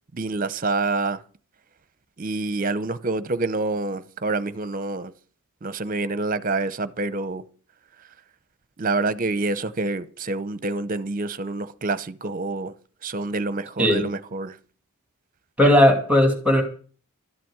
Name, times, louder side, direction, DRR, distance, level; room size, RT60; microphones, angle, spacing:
voice 1, 0.1-1.2 2.2-5.1 5.6-7.4 8.8-12.8 13.0-14.6, right 3 dB, 40° right, 0.7 m, -27 dB
voice 2, 15.6-16.6, left 1 dB, 5° right, 2.4 m, -17 dB
13.0 x 7.5 x 9.6 m
head